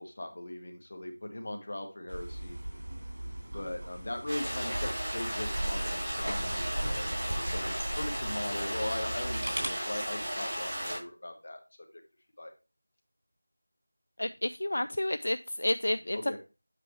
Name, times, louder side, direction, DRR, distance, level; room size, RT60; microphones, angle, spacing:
voice 1, 0.0-2.6 3.5-11.6 12.4-12.5 16.1-16.4, left 1 dB, 45° left, 1.4 m, -39 dB
sound 1, 2.1-9.7, right 1 dB, 90° right, 3.0 m, -37 dB
sound 2, 4.3-11.0, equal, 10° right, 3.0 m, -35 dB
voice 2, 14.2-16.2, left 1 dB, 70° left, 0.3 m, -30 dB
8.2 x 4.5 x 3.2 m
figure-of-eight pair, 175°, 0 cm